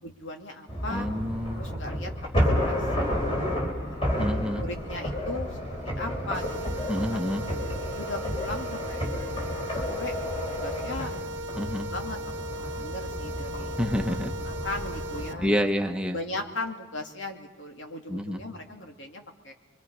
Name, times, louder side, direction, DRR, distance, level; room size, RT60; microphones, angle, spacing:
voice 1, 0.0-1.1 1.6-5.6 5.8-7.3 7.9-9.0 9.3-11.1 11.6-12.2 12.5-13.8 14.3-15.7 16.1-19.5, left 2 dB, 80° left, 3 dB, 2.5 m, -38 dB
sound 1, 0.7-15.5, equal, 30° left, 5.1 m, -31 dB
voice 2, 0.9-1.7 4.2-4.7 6.9-7.4 11.6-11.9 13.8-14.3 15.4-16.2 18.1-18.4, equal, 5° right, 4 dB, 1.0 m, -28 dB
sound 2, 6.3-15.3, right 1 dB, 75° right, 0.9 m, -37 dB
29.5 x 23.5 x 5.5 m, 1.2 s
head